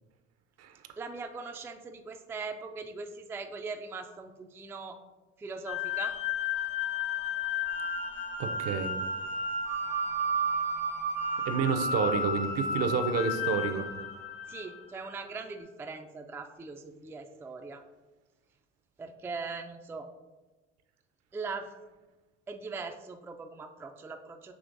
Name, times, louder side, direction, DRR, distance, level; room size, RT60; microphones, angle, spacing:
voice 1, 1.0-5.0 5.4-6.2 14.5-17.8 19.0-20.1 21.3-21.7 22.5-24.5, right 4 dB, 10° right, 5 dB, 0.3 m, -40 dB
sound 1, 5.7-14.8, left 2 dB, 90° left, 1.1 m, -32 dB
voice 2, 8.4-8.9 11.5-13.9, right 6 dB, 55° right, 8 dB, 0.6 m, -29 dB
6.1 x 3.0 x 2.5 m, 1.2 s
hypercardioid pair, 65°, 31 cm